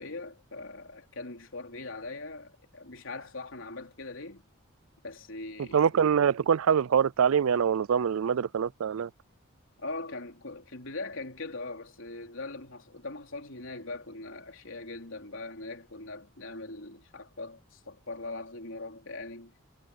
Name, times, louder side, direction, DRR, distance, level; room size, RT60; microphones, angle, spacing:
voice 1, 0.0-4.4 5.0-5.9 9.8-19.5, left 2 dB, 75° left, 3.5 m, -41 dB
voice 2, 5.7-9.1, right 7 dB, 90° right, 0.4 m, -24 dB
head